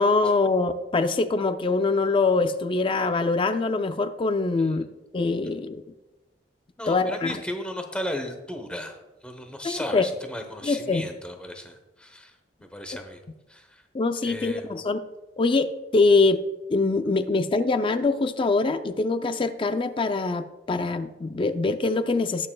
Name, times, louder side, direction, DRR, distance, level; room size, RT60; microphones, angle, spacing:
voice 1, 0.0-4.8 5.1-5.8 6.9-7.4 9.6-10.0 10.6-11.0 13.9-15.0 15.4-16.4 16.7-22.5, left 3 dB, 30° left, 10 dB, 0.4 m, -23 dB
voice 2, 6.8-12.3 12.6-13.2 13.5-13.8 14.2-14.7, left 1 dB, 5° left, 5 dB, 0.9 m, -35 dB
18.5 x 6.6 x 2.3 m, 1.1 s
head